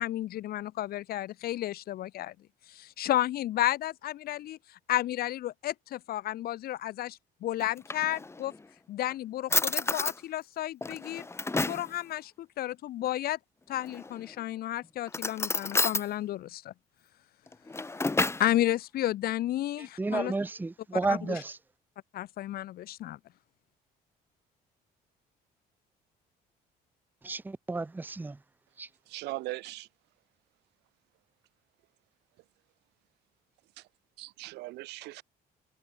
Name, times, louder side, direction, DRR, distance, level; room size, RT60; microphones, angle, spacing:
voice 1, 0.0-2.3 2.7-8.5 8.9-11.3 11.6-13.4 13.7-16.7 18.4-20.3 21.1-21.4 22.1-23.2, left 14 dB, 65° left, 0.9 m, -32 dB
Drawer open or close, 7.6-8.6 9.1-9.2 9.5-10.2 10.8-11.9 13.8-14.3 15.1-16.1 17.5-18.5, left 3 dB, 15° left, 1.8 m, -30 dB
voice 2, 19.8-21.6 27.2-28.4 28.8-28.9, right 3 dB, 10° right, 0.7 m, -32 dB
voice 3, 29.1-29.9 33.8-33.9 34.2-35.2, right 20 dB, 90° right, 4.1 m, -39 dB
cardioid pair, 110°, 17 cm